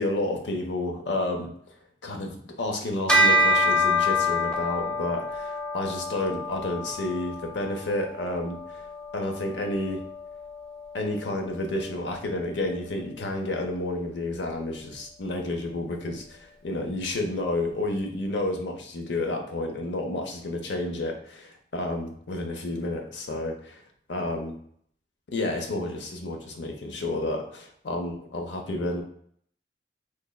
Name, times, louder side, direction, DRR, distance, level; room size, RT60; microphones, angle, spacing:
voice 1, 0.0-1.5 2.0-8.8 9.1-10.0 10.9-23.8 24.1-24.5 25.3-29.0, left 2 dB, 85° left, 3 dB, 0.6 m, -30 dB
Bell, 3.1-12.8, left 1 dB, 5° left, 0.3 m, -27 dB
3.3 x 3.2 x 2.2 m, 0.64 s
head